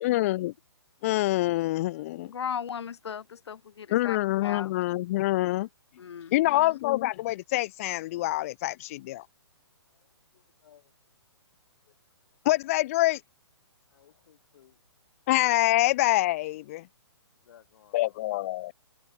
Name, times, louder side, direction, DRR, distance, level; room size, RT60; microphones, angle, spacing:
voice 1, 0.0-0.5 1.0-2.3 3.9-5.7 6.3-9.3 12.5-13.2 15.3-16.9 17.9-18.7, left 17 dB, 30° left, 0.4 m, -26 dB
voice 2, 2.2-4.8 6.0-6.8, left 7 dB, 70° left, 0.8 m, -37 dB
voice 3, 10.3-10.9 13.9-14.8 17.4-18.2, left 10 dB, 55° left, 3.1 m, -59 dB
hypercardioid pair, 140°, 15 cm